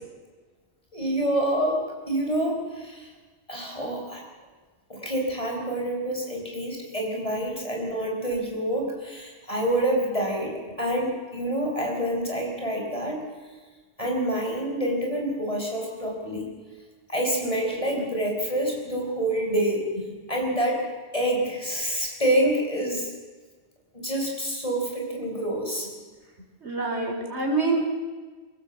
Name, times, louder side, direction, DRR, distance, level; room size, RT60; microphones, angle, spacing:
voice 1, 0.9-1.8 2.1-3.1 3.5-4.2 4.9-13.2 14.0-16.5 17.1-19.8 20.3-20.9 21.1-23.1 23.9-25.9, right 1 dB, 30° left, 0 dB, 5.2 m, -27 dB
voice 2, 26.6-27.8, right 3 dB, 75° right, 1 dB, 4.0 m, -26 dB
25.0 x 15.5 x 7.6 m, 1.4 s
omnidirectional pair, 1.2 m